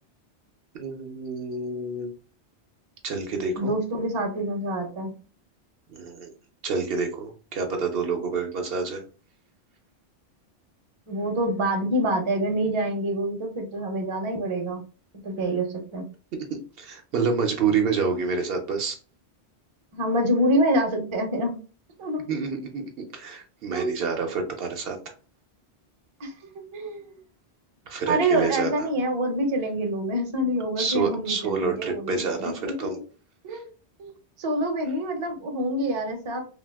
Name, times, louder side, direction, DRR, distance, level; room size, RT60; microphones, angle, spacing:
voice 1, 0.7-2.1 3.0-3.7 5.9-6.3 6.6-9.0 16.5-19.0 22.3-22.8 23.1-25.0 27.9-28.9 30.8-33.0, right 5 dB, 65° right, 4 dB, 0.7 m, -28 dB
voice 2, 3.6-5.1 11.1-14.8 15.2-16.0 19.9-21.5 22.0-22.2 23.7-23.9 26.2-26.3 26.7-27.2 28.1-33.0 33.4-33.7 34.0-34.1 34.4-36.4, right 1 dB, 35° right, 4 dB, 0.6 m, -26 dB
2.7 x 2.2 x 3.3 m, 0.37 s
omnidirectional pair, 1.1 m